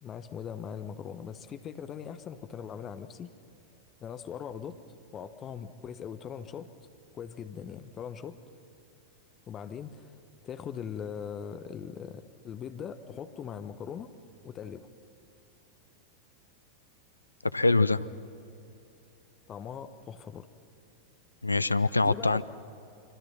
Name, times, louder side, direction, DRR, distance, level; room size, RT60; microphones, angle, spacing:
voice 1, 0.0-3.3 4.0-4.8 5.1-6.7 7.1-8.4 9.5-10.2 10.4-14.1 14.4-14.9 19.5-20.5 22.0-22.4, left 7 dB, 25° left, 10 dB, 1.1 m, -40 dB
voice 2, 17.5-18.1 21.4-22.4, left 3 dB, 80° left, 16 dB, 0.5 m, -24 dB
25.5 x 25.5 x 5.8 m, 2.8 s
figure-of-eight pair, 90°, 0 cm